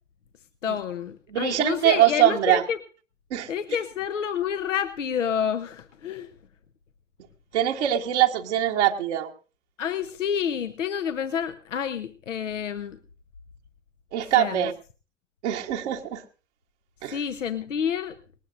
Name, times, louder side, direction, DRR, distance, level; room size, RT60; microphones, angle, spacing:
voice 1, 0.6-2.8 3.5-6.3 9.8-13.0 14.3-14.7 17.1-18.2, left 8 dB, 80° left, 8 dB, 1.0 m, -29 dB
voice 2, 1.3-2.6 3.3-3.5 7.5-9.3 14.1-14.7 15.4-16.2 17.0-17.2, right 12 dB, 65° right, 2 dB, 1.4 m, -22 dB
19.5 x 19.0 x 2.6 m, 0.36 s
figure-of-eight pair, 75°, 37 cm